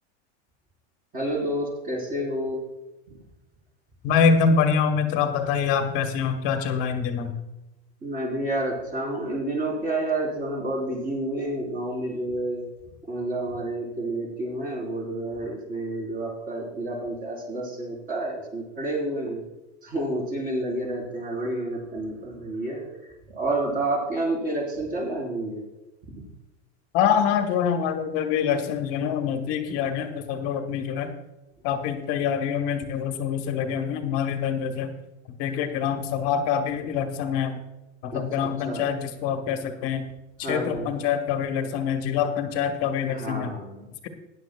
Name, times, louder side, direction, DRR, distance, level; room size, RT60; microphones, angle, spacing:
voice 1, 1.1-2.6 8.0-12.6 13.1-19.4 19.8-22.8 23.3-25.6 38.1-38.9 40.4-40.9 43.1-43.9, right 1 dB, 25° right, -1 dB, 3.9 m, -29 dB
voice 2, 4.0-7.3 26.9-31.1 31.6-34.9 35.4-37.6 38.0-40.0 40.4-43.5, left 7 dB, 40° left, 6 dB, 1.2 m, -25 dB
18.0 x 10.5 x 2.3 m, 0.98 s
supercardioid pair, 160°, 35 cm